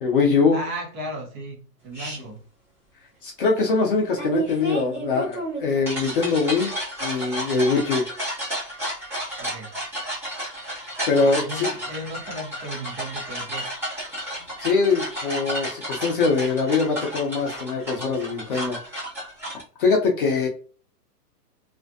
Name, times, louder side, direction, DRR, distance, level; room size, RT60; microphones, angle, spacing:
voice 1, 0.0-0.6 3.2-6.7 7.0-8.0 11.1-11.7 14.6-18.8 19.8-20.5, left 4 dB, 35° left, 0.5 m, -22 dB
voice 2, 0.5-2.4 9.4-9.7 11.2-13.8, right 1 dB, 35° right, 0.9 m, -35 dB
sound 1, 1.9-2.2 4.2-19.6, right 1 dB, 5° right, 0.6 m, -32 dB
2.4 x 2.1 x 2.6 m
hypercardioid pair, 135°, 47 cm